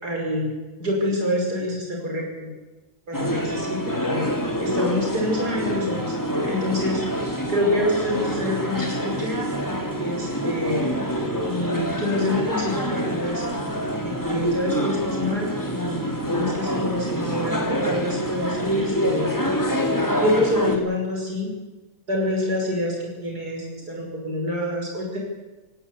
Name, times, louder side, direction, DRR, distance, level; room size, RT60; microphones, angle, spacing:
voice 1, 0.0-0.5 0.8-2.5 3.1-4.3 4.6-6.1 6.5-7.0 7.5-9.4 10.0-10.8 11.4-13.5 14.0-19.3 20.2-21.5 22.1-25.2, left 1 dB, 65° right, 0 dB, 6.2 m, -26 dB
sound 1, 3.1-20.8, equal, 10° left, 2.2 m, -26 dB
18.5 x 18.5 x 8.6 m, 1.2 s
omnidirectional pair, 1.8 m